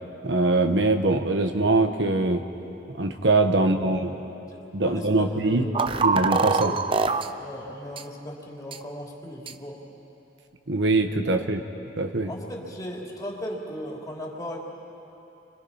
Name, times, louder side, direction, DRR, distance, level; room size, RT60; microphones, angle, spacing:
voice 1, 0.2-2.4 2.9-4.1 4.7-5.6 6.0-6.7 10.7-11.6 12.0-12.3, right 2 dB, 75° right, 6 dB, 1.3 m, -23 dB
voice 2, 3.6-4.0 4.5-6.0 6.5-6.9 7.4-9.8 12.2-14.6, equal, 20° left, -3 dB, 3.4 m, -37 dB
sound 1, 5.7-7.3 8.0-8.1 8.7-8.8 9.5-9.6, right 4 dB, 30° right, 0.7 m, -23 dB
29.5 x 25.5 x 5.7 m, 2.9 s
head